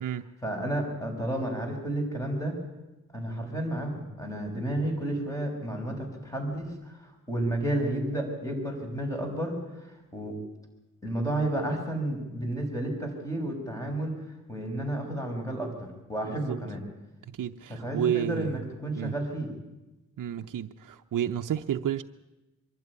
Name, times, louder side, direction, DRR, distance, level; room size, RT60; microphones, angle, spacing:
voice 1, 0.4-2.6 3.1-10.4 11.0-14.2 14.5-16.8 17.7-19.5, right 1 dB, 10° left, 2 dB, 6.2 m, -31 dB
voice 2, 17.4-18.6 19.0-19.1 20.2-22.0, right 10 dB, 75° right, 5 dB, 0.7 m, -30 dB
23.5 x 12.0 x 9.8 m, 1.0 s
cardioid pair, 70°, 32 cm